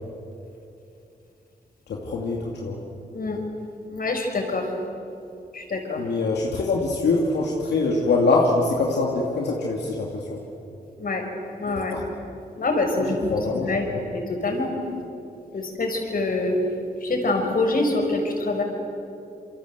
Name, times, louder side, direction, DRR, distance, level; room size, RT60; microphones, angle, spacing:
voice 1, 1.9-2.8 6.0-10.4 11.9-12.0 13.0-14.0, left 3 dB, 90° left, -1 dB, 2.5 m, -24 dB
voice 2, 3.9-4.7 5.5-6.0 11.0-11.2 11.6-11.9 12.6-14.7 15.5-16.6 17.0-18.6, left 2 dB, 55° left, 3 dB, 6.0 m, -25 dB
28.0 x 24.0 x 8.1 m, 2.8 s
cardioid pair, 60°, 17 cm